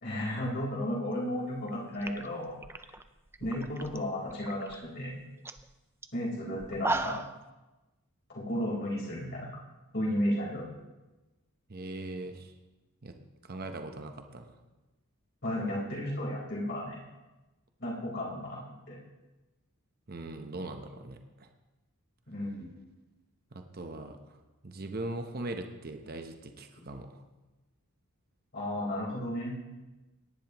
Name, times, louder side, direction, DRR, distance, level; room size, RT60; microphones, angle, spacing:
voice 1, 0.0-2.6 3.4-5.2 6.1-7.2 8.3-9.6 9.9-10.7 15.4-17.0 17.8-18.6 18.9-19.0 22.3-22.7 28.5-29.5, left 1 dB, 50° left, -4 dB, 4.2 m, -33 dB
sound 1, 1.6-1.7 2.0-4.0 4.3-4.8 5.1-5.2 5.4-5.6 6.0-6.1 6.6-7.4, right 2 dB, 10° right, 0.3 m, -35 dB
voice 2, 11.7-12.5 13.0-13.2 13.4-14.5 20.1-21.5 23.5-24.4 24.6-27.2, right 2 dB, 45° right, 6 dB, 0.9 m, -40 dB
18.0 x 11.0 x 3.0 m, 1.1 s
head